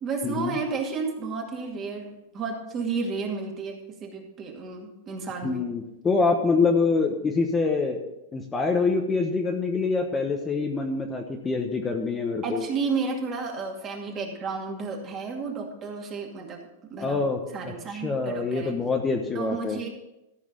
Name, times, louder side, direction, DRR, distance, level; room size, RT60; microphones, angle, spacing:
voice 1, 0.0-5.6 12.4-18.8 19.3-19.9, right 4 dB, 25° right, 1 dB, 2.3 m, -32 dB
voice 2, 5.4-8.0 8.3-12.7 17.0-17.4 17.7-19.8, left 4 dB, 15° left, 3 dB, 1.0 m, -25 dB
14.0 x 4.8 x 7.4 m, 0.93 s
supercardioid pair, 140°, 0 cm